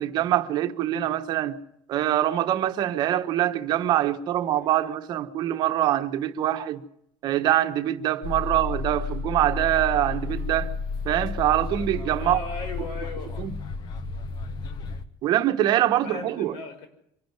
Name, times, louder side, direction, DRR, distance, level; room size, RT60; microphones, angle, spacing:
voice 1, 0.0-1.6 1.9-6.8 7.2-10.7 11.0-12.4 13.4-13.5 15.2-16.5, right 12 dB, 50° right, 1.3 m, -24 dB
sound 1, 8.2-15.0, left 4 dB, 50° left, 1.4 m, -32 dB
voice 2, 12.2-13.5 16.0-16.9, left 3 dB, 65° left, 5.8 m, -37 dB
25.0 x 11.5 x 9.4 m
cardioid pair, 145°, 9 cm